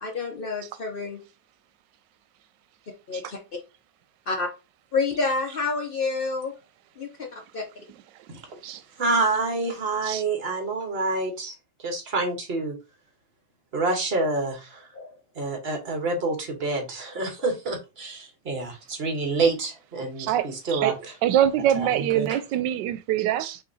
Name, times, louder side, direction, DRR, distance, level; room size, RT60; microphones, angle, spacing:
voice 1, 0.0-1.2 3.1-3.4 4.3-4.5 4.9-6.5 7.0-7.6 14.9-15.1, left 4 dB, 60° left, 0.5 m, -28 dB
voice 2, 9.0-11.5 11.8-12.7 13.7-14.8 15.4-21.1 21.8-21.9 22.1-22.4, right 3 dB, 40° right, 1.3 m, -27 dB
voice 3, 20.2-20.9 21.2-23.6, right 11 dB, 85° right, 1.2 m, -24 dB
5.8 x 2.9 x 2.7 m
omnidirectional pair, 1.9 m